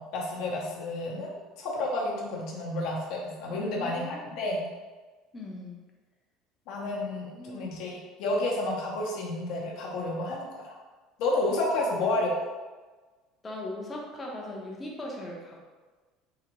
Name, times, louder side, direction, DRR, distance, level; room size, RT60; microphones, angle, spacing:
voice 1, 0.0-4.6 6.7-10.8 11.2-12.3, left 2 dB, 60° left, -3 dB, 0.7 m, -31 dB
voice 2, 3.6-4.5 5.3-5.8 7.4-7.7 11.8-12.1 13.4-15.6, left 1 dB, 15° left, -1 dB, 0.5 m, -39 dB
3.8 x 2.6 x 3.0 m, 1.3 s
cardioid pair, 180°, 0 cm